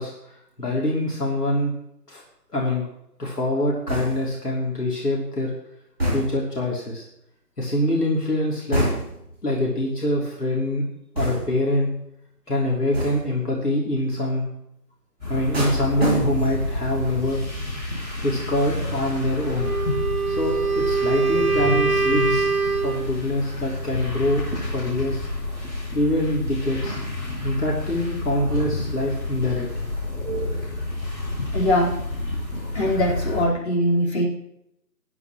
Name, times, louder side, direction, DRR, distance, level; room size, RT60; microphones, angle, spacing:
voice 1, 0.0-1.8 2.1-2.2 2.5-2.8 3.2-5.5 6.1-7.0 7.6-8.9 9.4-10.8 11.1-11.9 12.5-14.5 15.3-17.4 18.2-19.7 20.3-22.5 22.8-25.3 25.9-27.0 27.4-29.9, left 1 dB, 70° left, -3 dB, 3.2 m, -25 dB
sound 1, 3.9-4.4 6.0-6.6 8.7-9.3 11.2-11.7 12.9-13.4 15.5-16.7 17.0-17.4, equal, 40° right, 3.2 m, -27 dB
sound 2, 15.2-33.4, left 2 dB, ahead, 4.1 m, -29 dB
Wind instrument woodwind instrument, 19.6-23.1, right 4 dB, 60° right, 1.3 m, -23 dB
voice 2, 31.5-31.9 32.7-34.2, equal, 40° left, -6 dB, 4.3 m, -21 dB
20.0 x 9.7 x 3.1 m, 0.78 s
figure-of-eight pair, 175°, 49 cm